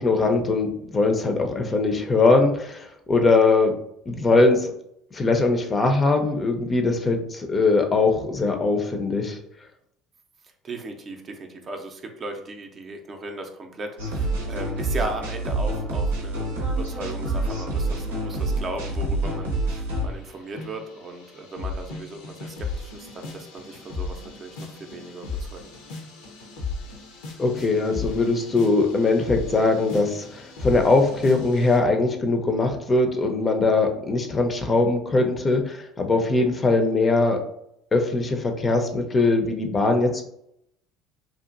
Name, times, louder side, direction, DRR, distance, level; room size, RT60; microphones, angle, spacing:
voice 1, 0.0-3.7 4.1-4.7 5.1-9.4 27.4-37.4 37.9-40.2, left 3 dB, 30° left, 4 dB, 0.5 m, -21 dB
voice 2, 10.4-25.7, right 2 dB, 40° right, 4 dB, 0.5 m, -37 dB
sound 1, 14.0-20.1, right 2 dB, 85° right, 0.7 m, -27 dB
sound 2, 18.0-19.6 19.9-31.8, left 4 dB, 75° left, 0.6 m, -36 dB
2.7 x 2.4 x 2.4 m, 0.74 s
hypercardioid pair, 65°, 0 cm